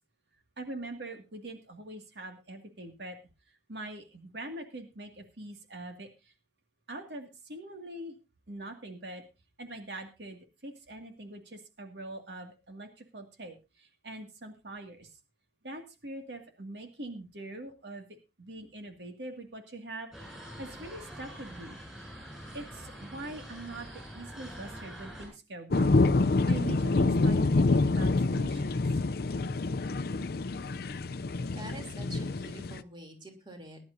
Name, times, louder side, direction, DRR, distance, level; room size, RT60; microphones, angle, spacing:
voice 1, 0.6-3.2 3.7-6.3 6.9-8.2 8.5-9.3 9.6-15.2 15.6-18.1 18.4-20.3 20.6-21.8 22.5-26.0 26.5-28.8, right 2 dB, 70° right, 4 dB, 2.3 m, -43 dB
sound 1, 20.1-25.3, equal, 5° right, 7.9 m, -45 dB
sound 2, 25.7-32.8, left 3 dB, 60° left, 0.5 m, -27 dB
voice 2, 31.5-33.8, right 1 dB, 25° right, 3 dB, 3.2 m, -46 dB
20.5 x 11.5 x 2.7 m, 0.27 s
head